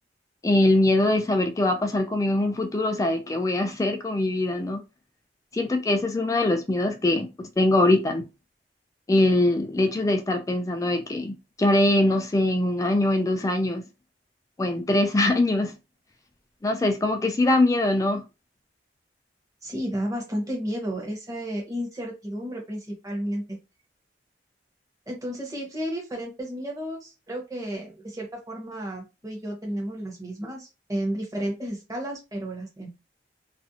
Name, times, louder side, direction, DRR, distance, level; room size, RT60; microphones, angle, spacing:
voice 1, 0.4-4.8 5.5-7.3 7.6-8.3 9.1-13.8 14.6-15.7 16.6-18.2, left 1 dB, 20° left, 0.3 m, -22 dB
voice 2, 19.6-23.6 25.1-32.9, equal, 20° right, 0.8 m, -32 dB
2.4 x 2.0 x 2.8 m
head